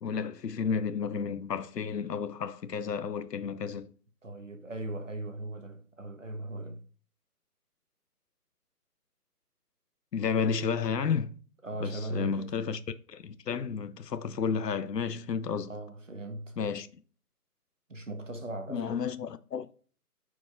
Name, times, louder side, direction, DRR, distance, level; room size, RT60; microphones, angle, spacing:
voice 1, 0.0-3.9 10.1-11.4 11.8-12.8 13.1-15.7 16.6-17.0 18.7-19.7, left 6 dB, 85° left, 0.7 m, -32 dB
voice 2, 4.2-6.8 11.6-12.5 15.7-16.6 17.9-19.0, right 2 dB, 50° right, 1.0 m, -38 dB
9.8 x 4.7 x 2.4 m
figure-of-eight pair, 175°, 47 cm